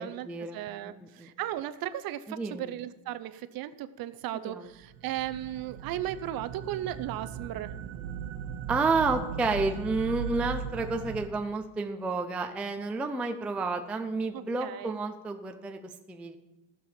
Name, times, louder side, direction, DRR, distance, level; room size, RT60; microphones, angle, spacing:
voice 1, 0.0-1.3 2.3-2.7 4.4-4.7 8.7-15.8 16.1-16.4, right 3 dB, 5° right, 5 dB, 0.3 m, -31 dB
voice 2, 0.5-7.7 14.3-15.0, right 12 dB, 50° right, 14 dB, 0.7 m, -36 dB
sound 1, 4.8-11.3, right 7 dB, 75° right, 1.0 m, -38 dB
14.0 x 7.1 x 5.7 m, 1.1 s
cardioid pair, 155°, 46 cm